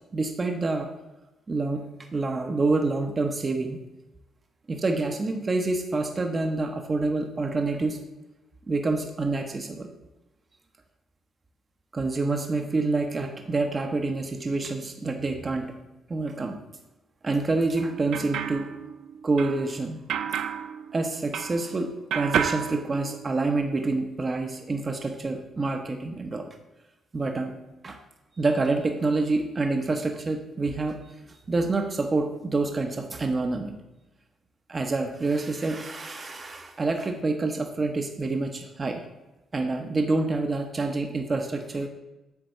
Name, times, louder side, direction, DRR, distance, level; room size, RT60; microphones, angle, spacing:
voice 1, 0.1-0.9 1.5-3.8 4.7-8.0 8.7-9.9 11.9-15.8 16.1-16.6 17.2-18.7 19.2-20.0 20.9-26.5 27.1-27.6 27.8-28.0 28.4-31.0 31.3-33.8 34.7-39.0 39.5-41.9, right 3 dB, 30° right, 5 dB, 0.7 m, -27 dB
sound 1, 17.7-21.8 22.1-23.6, right 8 dB, 80° right, 0.5 m, -32 dB
8.1 x 3.7 x 6.5 m, 1.0 s
cardioid pair, 90°, 0 cm